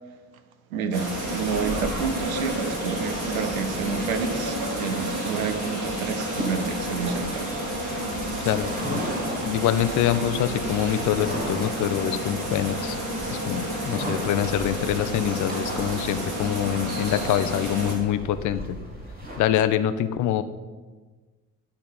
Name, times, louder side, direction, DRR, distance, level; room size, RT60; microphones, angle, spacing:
voice 1, 0.7-7.6, right 5 dB, 75° right, 9 dB, 0.9 m, -29 dB
sound 1, 0.9-19.4, right 1 dB, 20° right, 3.3 m, -38 dB
sound 2, 0.9-17.9, right 1 dB, 45° right, 3.2 m, -30 dB
voice 2, 8.4-9.0 9.4-13.0 13.5-18.6 19.4-20.4, left 11 dB, 45° left, 12 dB, 0.7 m, -25 dB
11.0 x 4.3 x 7.0 m, 1.3 s
figure-of-eight pair, 55°, 42 cm